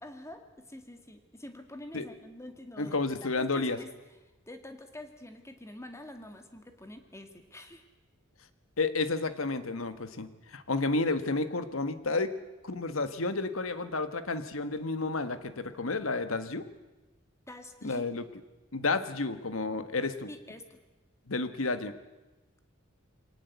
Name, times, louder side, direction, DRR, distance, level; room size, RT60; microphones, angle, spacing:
voice 1, 0.0-3.9 4.5-7.8 17.5-18.0 20.3-20.8, left 1 dB, 15° left, 6 dB, 2.1 m, -46 dB
voice 2, 2.8-3.8 8.8-12.3 12.6-16.7 17.8-18.2 18.7-20.3 21.3-21.9, left 3 dB, 75° left, 11 dB, 1.5 m, -31 dB
23.5 x 18.5 x 8.2 m, 1.1 s
head